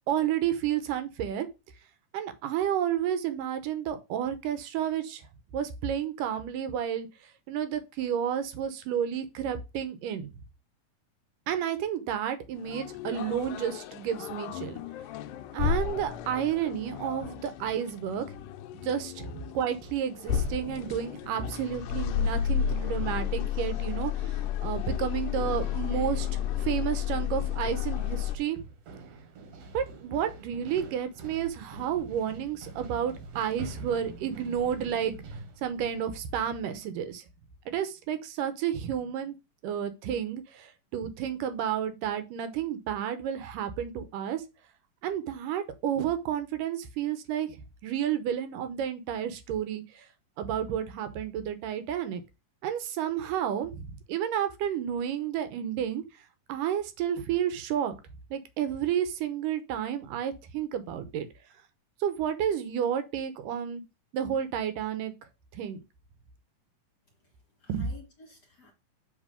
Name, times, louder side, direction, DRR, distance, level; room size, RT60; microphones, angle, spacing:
voice 1, 0.1-1.5 2.1-5.2 5.5-10.3 11.5-14.8 15.5-18.4 18.7-28.6 29.7-37.2 37.7-39.4 39.6-44.4 45.0-47.6 47.8-50.1 50.4-52.2 52.6-56.0 56.5-58.0 58.3-61.3 62.0-63.8 64.1-65.1 65.5-65.8 67.7-67.9, right 9 dB, 75° right, 2.5 m, -31 dB
sound 1, 12.6-28.4, left 9 dB, 80° left, 2.2 m, -32 dB
sound 2, 20.3-36.7, right 2 dB, 60° right, 2.2 m, -47 dB
voice 2, 67.1-68.7, left 2 dB, 35° left, 2.1 m, -55 dB
7.5 x 4.1 x 5.1 m
omnidirectional pair, 4.0 m